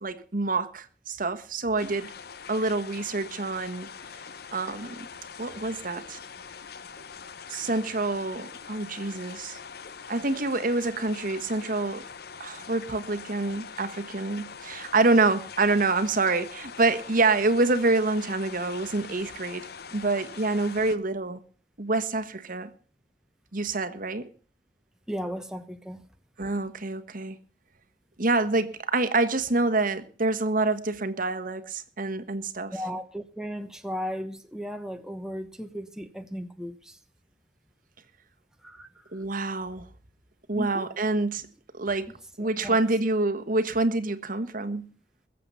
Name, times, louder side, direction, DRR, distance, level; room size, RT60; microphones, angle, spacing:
voice 1, 0.0-2.1 2.5-3.9 4.5-5.1 5.4-6.2 7.5-9.6 10.1-12.0 12.4-19.6 19.9-21.4 21.8-22.7 23.5-24.3 26.4-27.4 28.2-32.7 39.1-39.9 40.5-41.5 41.7-42.1 42.4-44.9, right 3 dB, 50° right, 1.3 m, -27 dB
sound 1, 1.8-21.0, left 6 dB, 60° left, 0.8 m, -43 dB
voice 2, 25.1-26.0 32.7-37.0 38.6-38.9 40.5-40.9 42.4-42.8, equal, 5° right, 1.0 m, -35 dB
21.5 x 7.7 x 5.6 m
head